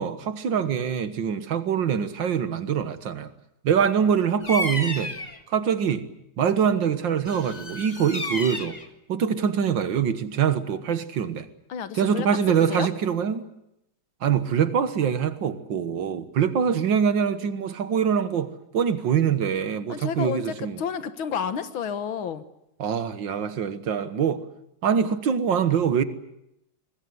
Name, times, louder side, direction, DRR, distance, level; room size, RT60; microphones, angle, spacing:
voice 1, 0.0-3.3 3.6-5.1 5.5-6.1 6.4-8.8 9.1-11.5 11.9-13.5 14.2-20.8 22.8-24.5 24.8-26.0, right 7 dB, 65° right, 2.0 m, -24 dB
Bird vocalization bird call bird song, 4.4-5.4 7.3-8.9, left 2 dB, 20° left, 1.7 m, -32 dB
voice 2, 11.7-12.3 12.7-12.9 19.9-22.4, left 7 dB, 75° left, 2.1 m, -30 dB
24.0 x 20.0 x 9.5 m
omnidirectional pair, 2.2 m